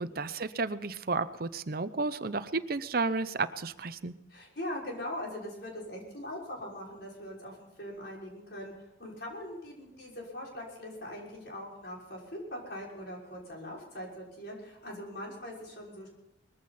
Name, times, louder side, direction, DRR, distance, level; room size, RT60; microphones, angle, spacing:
voice 1, 0.0-4.1, right 3 dB, 50° right, 12 dB, 0.7 m, -32 dB
voice 2, 4.3-8.7 9.0-16.1, left 1 dB, 55° left, -2 dB, 5.9 m, -41 dB
21.0 x 15.0 x 4.2 m, 1.0 s
head